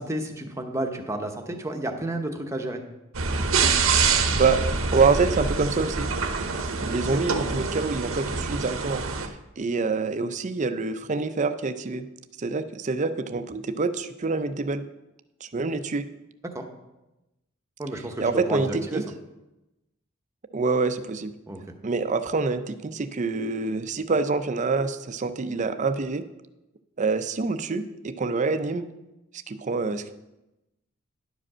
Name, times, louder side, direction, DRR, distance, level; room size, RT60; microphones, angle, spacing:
voice 1, 0.0-2.8 7.1-7.2 16.4-16.6 17.8-19.0 21.5-21.6, right 1 dB, 15° right, 4 dB, 0.9 m, -31 dB
sound 1, 3.1-9.3, right 4 dB, 85° right, 0.9 m, -25 dB
voice 2, 4.3-6.1 6.8-9.0 9.6-12.1 12.4-14.8 15.4-16.0 18.2-19.0 20.5-21.3 21.8-26.2 27.0-28.9 29.5-30.2, right 4 dB, 35° right, 11 dB, 0.5 m, -26 dB
11.0 x 5.0 x 6.1 m, 0.97 s
head